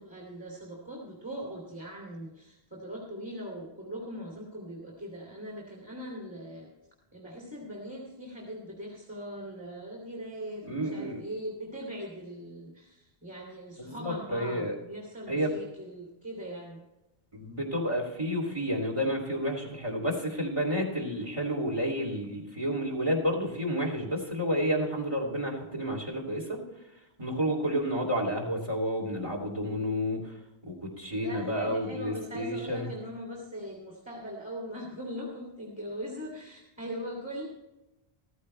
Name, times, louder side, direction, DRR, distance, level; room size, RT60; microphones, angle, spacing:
voice 1, 0.0-6.7 7.1-16.8 31.1-37.4, equal, 5° right, -2 dB, 2.6 m, -41 dB
voice 2, 10.6-11.2 13.8-14.7 15.3-15.5 17.3-26.6 27.2-30.4 30.7-32.9, equal, 30° right, 1 dB, 2.9 m, -30 dB
14.5 x 14.5 x 3.3 m, 0.98 s
omnidirectional pair, 1.1 m